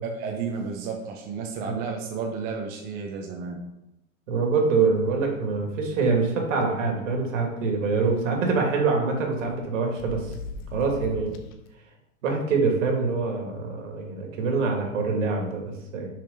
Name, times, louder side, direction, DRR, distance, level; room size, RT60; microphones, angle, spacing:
voice 1, 0.0-3.6, right 5 dB, 25° right, 1 dB, 0.6 m, -32 dB
voice 2, 4.3-10.3 10.7-11.4 12.2-16.1, right 4 dB, 65° right, 1 dB, 2.2 m, -25 dB
sound 1, 4.7-5.7 6.0-6.1 6.4-6.6 7.8-8.9 9.4-11.7, left 4 dB, 35° left, 0.7 m, -42 dB
6.4 x 4.2 x 5.2 m, 0.89 s
hypercardioid pair, 145°, 40 cm